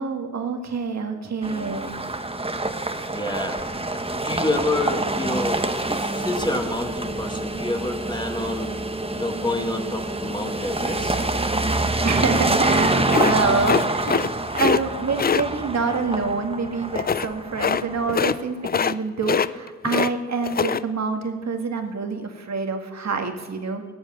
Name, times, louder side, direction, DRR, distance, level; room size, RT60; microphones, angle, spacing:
voice 1, 0.0-2.0 12.0-14.2 14.5-23.9, right 4 dB, 60° right, 5 dB, 2.0 m, -26 dB
sound 1, 1.4-18.4, right 2 dB, 20° right, 1.3 m, -26 dB
voice 2, 3.1-3.6 3.9-8.7 9.1-11.2, left 2 dB, 15° left, 3 dB, 2.2 m, -28 dB
sound 2, 13.1-14.3 14.5-14.8 15.2-15.4 17.0-17.3 17.6-17.8 18.1-18.4 18.6-19.0 19.2-20.1 20.4-20.8, left 6 dB, 30° left, 0.4 m, -22 dB
19.0 x 7.2 x 9.3 m, 1.5 s
cardioid pair, 65°, 31 cm